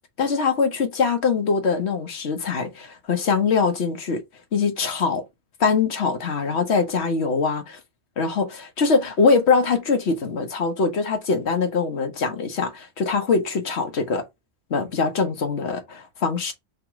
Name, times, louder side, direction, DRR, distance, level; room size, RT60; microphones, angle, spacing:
voice 1, 0.2-4.2 4.5-5.2 5.6-7.8 8.2-14.2 14.7-16.5, left 5 dB, 65° left, 1.3 m, -23 dB
3.7 x 3.0 x 4.8 m
omnidirectional pair, 1.2 m